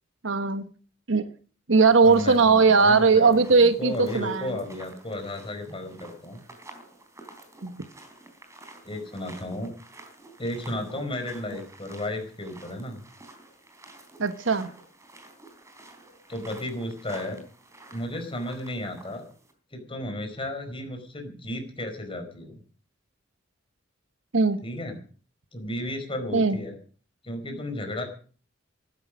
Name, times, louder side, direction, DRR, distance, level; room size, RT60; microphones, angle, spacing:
voice 1, 0.2-0.7 1.1-1.3 1.7-4.6 7.6-7.8 14.2-14.7 24.3-24.6 26.3-26.6, right 4 dB, 70° right, 11 dB, 1.2 m, -19 dB
sound 1, 1.8-19.5, right 2 dB, 15° right, 3.7 m, -50 dB
voice 2, 2.0-6.4 8.8-9.7 10.4-13.0 16.3-17.4 17.9-19.2 19.7-22.6 24.6-24.9 25.5-26.7 27.2-28.0, left 1 dB, 25° left, 5 dB, 4.9 m, -33 dB
15.5 x 12.5 x 6.3 m, 0.41 s
head